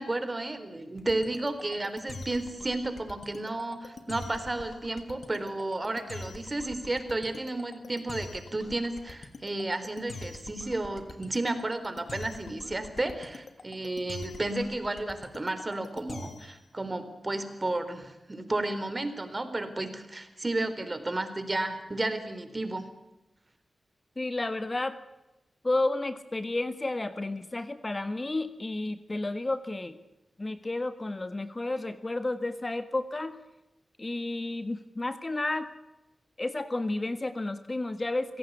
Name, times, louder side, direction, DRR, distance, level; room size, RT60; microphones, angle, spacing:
voice 1, 0.0-22.9, right 2 dB, 30° right, 10 dB, 4.0 m, -32 dB
sound 1, 1.0-16.6, left 3 dB, 65° left, 2.9 m, -44 dB
voice 2, 24.2-25.0 25.6-30.0 30.4-33.4 34.0-35.7 36.4-38.4, left 2 dB, 30° left, 11 dB, 1.6 m, -31 dB
26.0 x 17.0 x 8.3 m, 0.97 s
cardioid pair, 65°, 0 cm